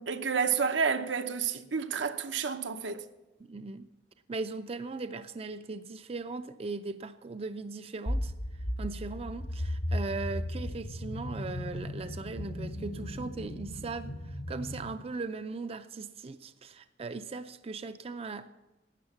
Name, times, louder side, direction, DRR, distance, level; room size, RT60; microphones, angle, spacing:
voice 1, 0.0-3.0, right 6 dB, 85° right, 0.9 m, -30 dB
voice 2, 3.5-3.9 4.3-8.3 8.8-18.5, right 3 dB, 35° right, 0.4 m, -39 dB
sound 1, 8.1-14.9, left 1 dB, 75° left, 3.8 m, -36 dB
12.5 x 9.1 x 7.2 m
head